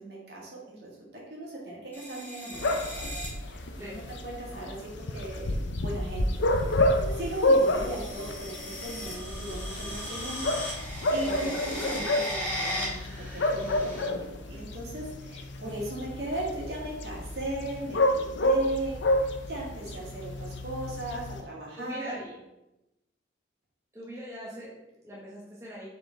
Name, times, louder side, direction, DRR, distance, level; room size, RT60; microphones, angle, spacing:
voice 1, 0.0-3.1 3.4-6.4 6.7-22.1, right 2 dB, 55° right, -4 dB, 1.9 m, -37 dB
sound 1, 1.9-3.3 4.5-4.8 5.8-14.1, equal, 10° left, 1.5 m, -38 dB
sound 2, 2.5-21.4, left 1 dB, 75° left, 0.6 m, -30 dB
voice 2, 11.2-11.6 21.7-22.4 23.9-25.9, right 1 dB, 15° right, -6 dB, 1.0 m, -41 dB
5.4 x 3.8 x 4.5 m, 0.91 s
head